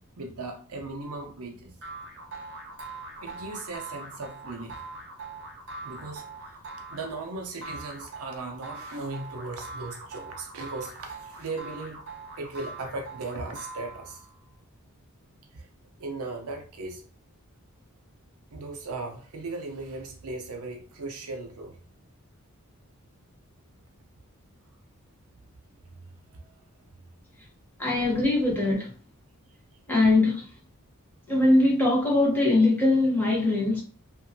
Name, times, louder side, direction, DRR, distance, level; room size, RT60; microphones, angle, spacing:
voice 1, 0.2-1.7 3.2-4.8 5.8-6.6 6.9-12.0 12.4-14.3 15.5-15.7 16.0-17.0 18.5-21.8 25.9-26.1 26.3-26.6, right 3 dB, 75° right, 0.6 m, -37 dB
sound 1, 1.8-14.3, right 3 dB, 55° right, 0.9 m, -42 dB
voice 2, 27.8-28.9 29.9-30.5 31.3-33.8, left 2 dB, 10° left, 1.0 m, -21 dB
2.8 x 2.6 x 2.6 m
head